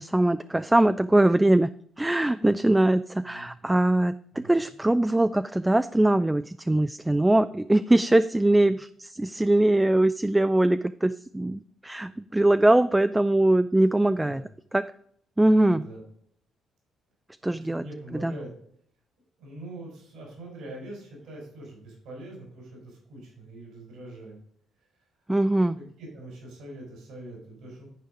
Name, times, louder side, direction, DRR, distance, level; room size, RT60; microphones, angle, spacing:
voice 1, 0.0-1.7 2.0-14.4 14.7-14.8 15.4-15.9 17.4-17.8 18.2-18.3 25.3-25.8, right 1 dB, 10° right, 12 dB, 0.3 m, -22 dB
voice 2, 3.3-3.8 4.3-4.7 14.2-14.5 15.7-16.0 17.4-18.5 19.4-24.4 26.0-27.9, right 1 dB, 85° right, -1 dB, 4.2 m, -43 dB
11.0 x 4.5 x 5.0 m, 0.66 s
cardioid pair, 90°, 0 cm